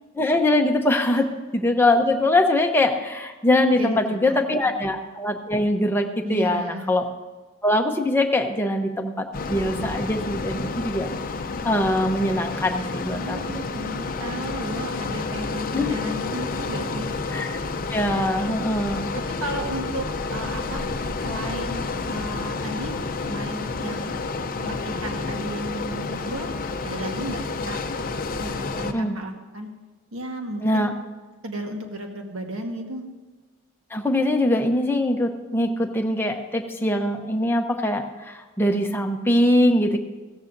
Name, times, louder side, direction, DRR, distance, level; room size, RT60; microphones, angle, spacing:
voice 1, 0.2-1.3 1.5-7.1 7.6-11.1 11.6-13.4 15.7-15.9 17.3-17.5 17.9-19.1 28.9-29.2 30.6-30.9 33.9-40.0, left 1 dB, 10° left, 3 dB, 0.8 m, -22 dB
voice 2, 3.7-4.5 6.2-6.9 13.1-17.1 19.4-20.9 21.2-23.0 23.2-24.1 24.6-26.5 26.8-27.8 28.4-29.7 30.1-30.9 31.4-33.0, right 1 dB, 70° right, 3 dB, 1.4 m, -34 dB
sound 1, 9.3-28.9, left 3 dB, 45° left, 0.6 m, -30 dB
16.0 x 14.0 x 2.6 m, 1.3 s
head